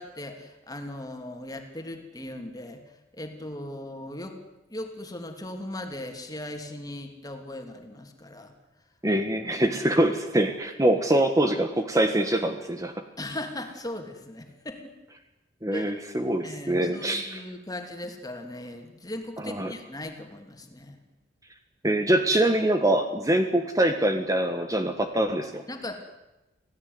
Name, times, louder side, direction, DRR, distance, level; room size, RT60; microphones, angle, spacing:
voice 1, 0.0-2.8 3.1-4.4 4.7-8.5 9.6-9.8 13.2-14.9 15.7-16.0 16.4-21.0 25.7-26.0, left 1 dB, 20° left, 4 dB, 3.0 m, -38 dB
voice 2, 9.0-12.9 15.6-17.4 19.4-19.7 21.8-25.6, right 1 dB, 20° right, 6 dB, 1.4 m, -24 dB
26.5 x 17.0 x 9.6 m, 1.0 s
head